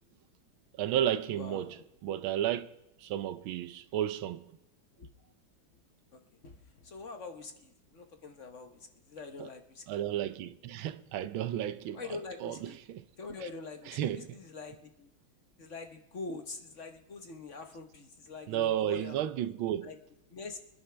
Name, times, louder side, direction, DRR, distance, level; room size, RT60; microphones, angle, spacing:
voice 1, 0.7-2.7 3.0-4.5 9.4-9.5 9.9-12.8 13.4-13.5 13.8-14.4 18.5-19.9, right 11 dB, 85° right, 1.5 m, -33 dB
voice 2, 1.3-1.7 5.0-5.1 6.1-6.5 6.8-8.8 9.1-9.8 11.9-12.8 13.2-15.1 15.6-19.3 19.8-20.0 20.3-20.6, left 4 dB, 45° left, 1.1 m, -44 dB
25.5 x 10.5 x 3.3 m
omnidirectional pair, 2.2 m